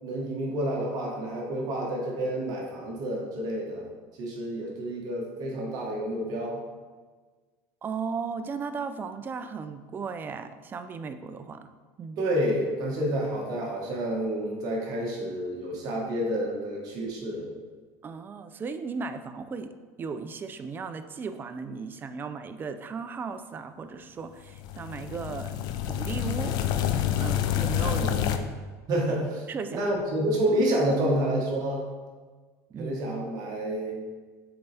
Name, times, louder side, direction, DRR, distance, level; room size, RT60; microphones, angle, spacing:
voice 1, 0.0-3.8 4.2-6.6 12.2-17.5 27.9-28.4 28.9-31.8 32.8-34.0, right 1 dB, 50° right, -2 dB, 1.5 m, -29 dB
voice 2, 7.8-11.7 12.0-12.2 18.0-19.7 20.0-26.8 27.2-28.1 29.5-29.8 32.7-33.0, right 5 dB, 25° right, 9 dB, 0.4 m, -36 dB
sound 1, 24.5-28.4, left 11 dB, 55° left, 0.5 m, -28 dB
6.9 x 4.0 x 3.4 m, 1.4 s
supercardioid pair, 125°, 8 cm